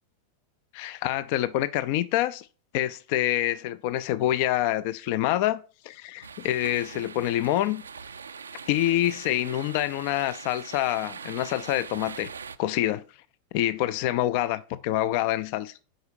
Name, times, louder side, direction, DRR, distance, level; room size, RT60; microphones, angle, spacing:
voice 1, 0.7-2.5 2.7-7.8 8.7-12.3 12.6-13.0 13.5-15.7, left 13 dB, 45° left, 0.4 m, -26 dB
sound 1, 6.2-12.6, right 6 dB, 70° right, 0.4 m, -42 dB
7.9 x 5.2 x 2.6 m
figure-of-eight pair, 90°, 0 cm